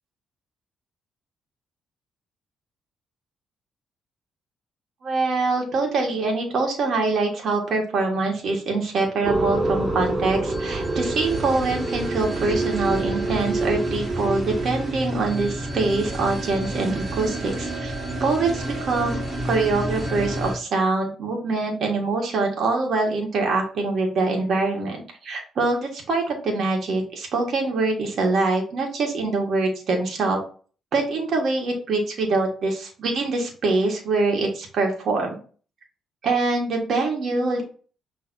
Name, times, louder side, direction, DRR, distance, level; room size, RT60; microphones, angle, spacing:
voice 1, 5.0-17.9 18.2-19.2 19.4-30.4 30.9-35.4 36.2-37.6, right 3 dB, 60° right, 1 dB, 1.5 m, -24 dB
sound 1, 9.2-20.6, right 2 dB, 30° right, 1.8 m, -27 dB
6.0 x 3.3 x 2.7 m, 0.39 s
cardioid pair, 90°, 0 cm